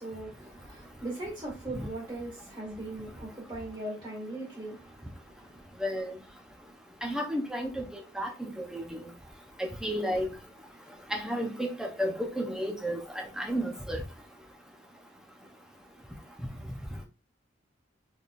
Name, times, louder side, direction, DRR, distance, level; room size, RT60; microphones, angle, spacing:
voice 1, 0.0-5.6, right 2 dB, 25° right, 2.0 m, -39 dB
voice 2, 5.8-6.2 7.0-9.0 9.8-10.3 11.1-14.0, equal, 5° right, 0.8 m, -32 dB
4.1 x 3.6 x 2.5 m
head